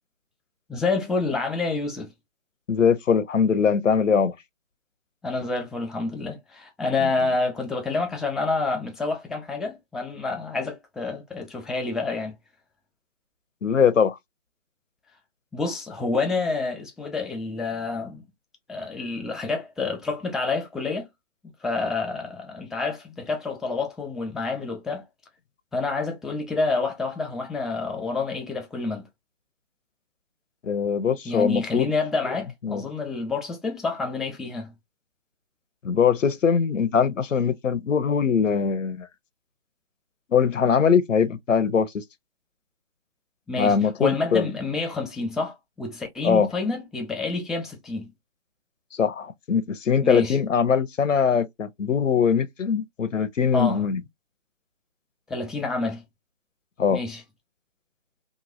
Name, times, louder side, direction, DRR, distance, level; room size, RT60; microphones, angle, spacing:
voice 1, 0.7-2.1 5.2-12.3 15.5-18.2 18.7-21.1 21.6-25.0 25.7-29.1 31.3-34.7 43.5-48.1 50.0-50.4 53.5-53.8 55.3-56.0 56.9-57.2, left 3 dB, ahead, 0.3 m, -28 dB
voice 2, 2.7-4.3 7.0-7.1 13.6-14.2 30.6-31.9 32.6-32.8 35.8-39.1 40.3-42.0 43.6-44.5 46.2-46.5 48.9-54.0 56.8-57.0, left 6 dB, 90° left, 0.7 m, -22 dB
3.0 x 2.4 x 2.4 m
figure-of-eight pair, 165°, 37 cm